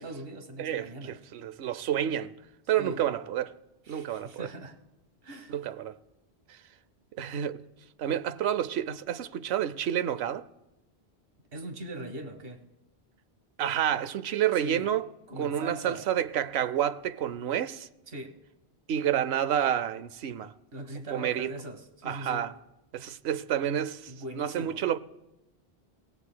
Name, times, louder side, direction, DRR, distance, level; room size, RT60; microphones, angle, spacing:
voice 1, 0.0-1.2 2.8-3.0 3.8-4.8 5.2-5.6 11.5-12.6 14.6-14.9 15.3-16.0 18.1-18.4 20.7-22.5 24.1-24.8, right 2 dB, 60° right, 1.5 m, -40 dB
voice 2, 0.6-2.3 2.7-3.5 3.9-4.5 5.5-6.0 7.2-7.6 8.0-10.5 13.6-15.1 15.4-17.9 18.9-20.5 21.1-21.5 22.1-22.5 22.9-25.0, right 10 dB, 80° right, 0.9 m, -29 dB
29.5 x 16.5 x 2.2 m
omnidirectional pair, 1.1 m